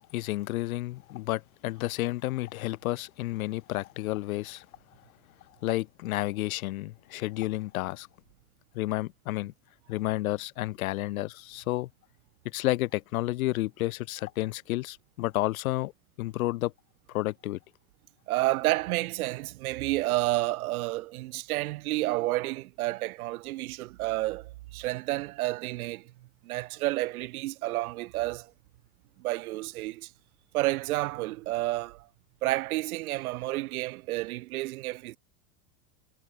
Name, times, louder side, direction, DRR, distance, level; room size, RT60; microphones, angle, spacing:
voice 1, 0.0-4.7 5.6-8.1 8.7-9.5 9.9-11.9 12.4-15.9 16.2-16.7 17.1-17.6, left 17 dB, 75° left, 3.2 m, -31 dB
voice 2, 18.3-26.1 26.4-28.5 29.2-30.1 30.5-32.1 32.4-35.2, right 18 dB, 85° right, 1.2 m, -30 dB
supercardioid pair, 170°, 42 cm